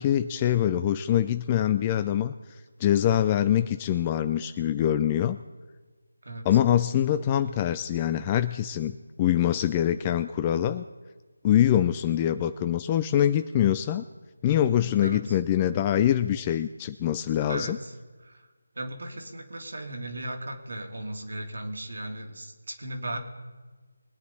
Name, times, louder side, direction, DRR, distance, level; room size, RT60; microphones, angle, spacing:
voice 1, 0.0-2.3 2.8-5.4 6.4-8.9 9.2-10.8 11.4-14.0 14.4-17.8, left 11 dB, 20° left, 11 dB, 0.4 m, -24 dB
voice 2, 17.5-17.9 18.2-18.3 18.8-23.2, right 1 dB, 70° right, 3 dB, 2.5 m, -36 dB
23.0 x 9.5 x 4.2 m, 1.3 s
figure-of-eight pair, 165°, 0 cm